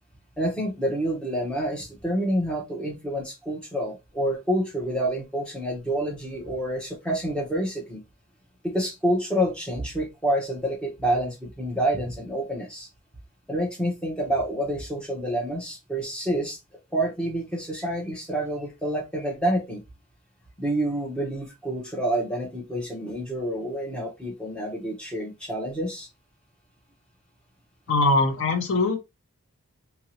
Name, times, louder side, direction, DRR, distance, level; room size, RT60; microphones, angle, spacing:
voice 1, 0.4-8.0 8.6-12.9 13.5-16.6 16.9-19.8 20.6-26.1, right 1 dB, 5° left, 0.8 m, -28 dB
voice 2, 27.9-29.0, left 2 dB, 65° left, 0.6 m, -21 dB
2.8 x 2.7 x 2.9 m
head